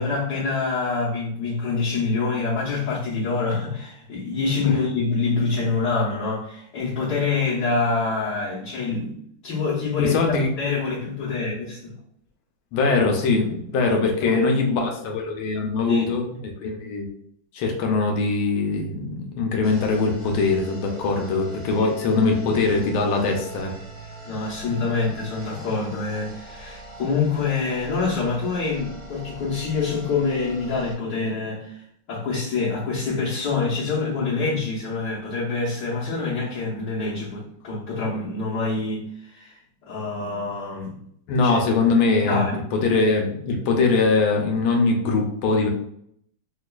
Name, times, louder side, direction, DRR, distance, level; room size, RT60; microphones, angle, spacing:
voice 1, 0.0-9.1 9.4-10.2 10.6-11.9 13.8-13.9 14.2-14.4 15.9-16.1 21.8-21.9 24.2-39.6 39.9-41.0 41.4-41.6 42.3-42.6, left 4 dB, 60° left, -9 dB, 1.5 m, -26 dB
voice 2, 10.0-10.5 12.7-17.1 17.5-23.7 41.3-45.7, left 3 dB, 80° left, 2 dB, 1.4 m, -22 dB
sound 1, 19.6-30.9, right 2 dB, 35° right, 0.7 m, -41 dB
4.8 x 2.3 x 2.2 m, 0.70 s
omnidirectional pair, 2.3 m